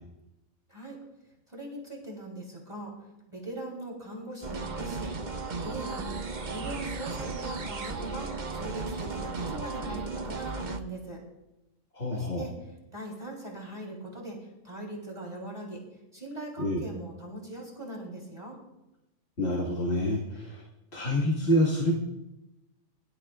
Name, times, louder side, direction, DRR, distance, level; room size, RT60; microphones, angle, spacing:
voice 1, 1.5-2.9 3.3-5.1 5.6-6.1 6.5-11.2 12.1-15.8 16.1-18.6, right 1 dB, 20° right, -2 dB, 3.5 m, -40 dB
sound 1, 4.4-10.8, right 3 dB, 40° right, 0.9 m, -35 dB
voice 2, 11.9-12.4 16.6-16.8 19.4-20.6 20.9-21.9, equal, 50° left, -3 dB, 2.2 m, -27 dB
23.5 x 13.0 x 2.5 m, 0.96 s
omnidirectional pair, 1.4 m